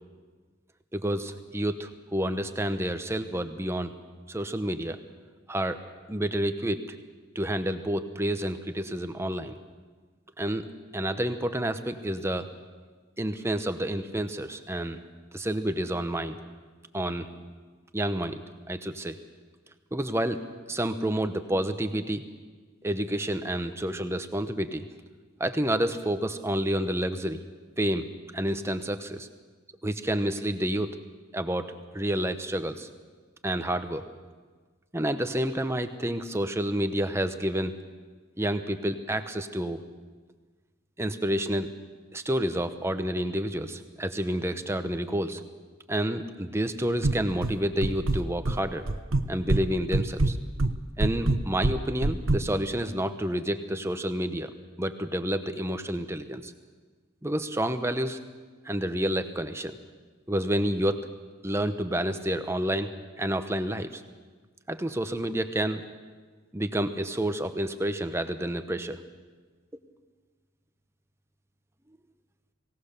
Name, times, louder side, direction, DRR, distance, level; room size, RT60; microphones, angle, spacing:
voice 1, 0.9-3.9 4.3-5.0 5.5-5.8 6.1-6.8 7.3-9.6 10.4-10.7 10.9-12.5 13.2-15.0 15.3-16.4 16.9-17.3 17.9-19.2 19.9-20.4 20.7-22.2 22.8-24.9 25.4-27.4 27.8-28.1 28.3-29.3 29.8-30.9 31.3-32.9 33.4-34.1 34.9-37.7 38.4-39.8 41.0-41.7 42.1-45.4 45.9-48.9 49.3-50.4 51.0-54.5 54.8-56.5 57.2-58.2 58.6-59.8 60.3-61.1 61.4-62.9 63.2-64.0 64.7-65.8 66.5-69.0, right 1 dB, 15° right, 9 dB, 1.0 m, -29 dB
sound 1, 47.0-47.5 47.8-48.6 48.9-49.6 49.9-52.4, right 2 dB, 90° right, 1.1 m, -24 dB
23.5 x 17.5 x 6.8 m, 1.4 s
head